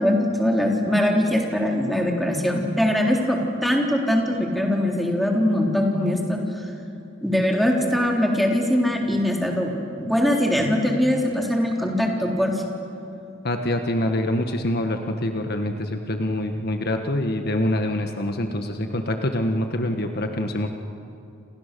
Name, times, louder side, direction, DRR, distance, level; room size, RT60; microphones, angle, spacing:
voice 1, 0.0-6.4 7.2-9.7 10.0-12.5, left 1 dB, ahead, 0 dB, 3.5 m, -22 dB
voice 2, 13.4-20.7, left 1 dB, 50° left, 5 dB, 1.5 m, -25 dB
29.5 x 27.0 x 6.9 m, 2.7 s
head